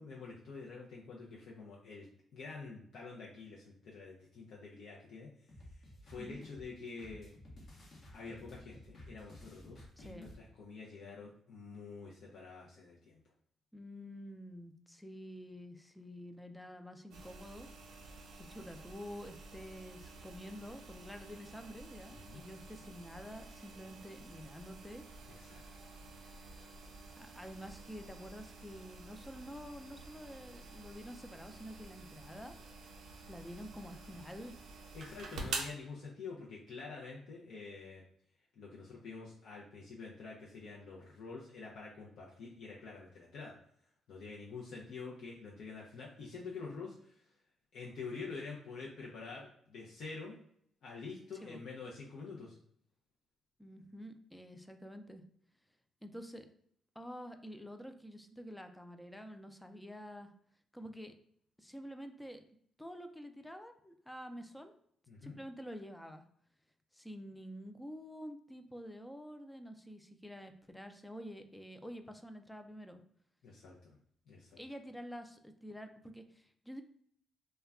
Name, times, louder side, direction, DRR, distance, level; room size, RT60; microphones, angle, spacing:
voice 1, 0.0-2.1 2.3-5.3 5.7-7.3 8.1-13.2 22.1-22.5 25.3-25.9 34.9-38.0 38.6-43.5 44.1-47.3 47.7-50.3 50.8-52.5 65.1-65.4 73.4-74.0 74.3-74.6, left 4 dB, 70° left, -4 dB, 0.5 m, -47 dB
sound 1, 5.5-10.4, left 1 dB, 50° left, 0.8 m, -54 dB
voice 2, 10.0-10.3 13.7-17.7 18.4-25.3 27.2-32.6 33.3-34.5 51.4-51.6 53.6-55.2 56.0-56.5 57.0-60.3 60.7-61.1 61.6-62.4 62.8-64.8 65.2-66.2 66.9-73.0 74.6-76.8, equal, 5° left, 7 dB, 0.3 m, -48 dB
sound 2, 17.1-35.7, right 3 dB, 75° right, 0.5 m, -49 dB
2.2 x 2.1 x 3.5 m, 0.66 s
cardioid pair, 90°, 0 cm